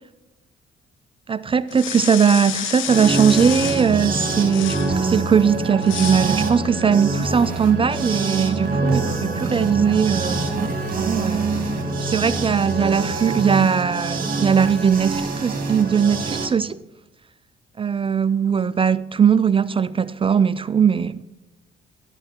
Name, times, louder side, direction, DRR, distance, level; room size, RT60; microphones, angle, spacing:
voice 1, 1.3-11.5 12.0-16.8 17.8-21.2, right 7 dB, 25° right, 0.3 m, -19 dB
sound 1, 1.7-4.0 4.5-5.0 5.8-6.3, left 12 dB, 80° left, 0.7 m, -30 dB
sound 2, 2.8-16.5, right 4 dB, 50° right, 1.9 m, -26 dB
sound 3, 3.6-13.0, right 1 dB, 30° left, 2.6 m, -31 dB
12.5 x 8.8 x 3.0 m
cardioid pair, 90°, 20 cm